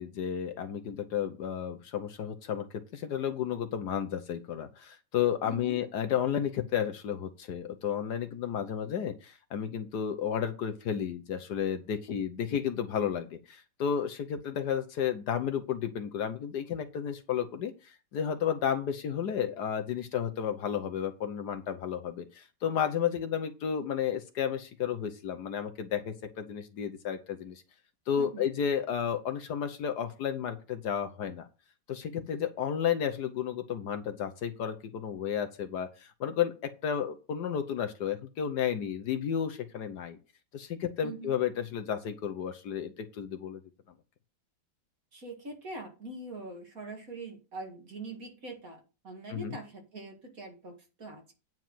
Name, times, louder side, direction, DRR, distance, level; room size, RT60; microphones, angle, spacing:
voice 1, 0.0-27.6 28.1-31.5 31.9-40.2 40.5-43.6 49.3-49.6, left 8 dB, 65° left, 7 dB, 1.3 m, -32 dB
voice 2, 5.4-5.8 28.2-28.4 41.0-41.3 45.1-51.3, right 2 dB, 45° right, 2 dB, 2.4 m, -43 dB
9.2 x 4.6 x 7.5 m, 0.32 s
omnidirectional pair, 2.1 m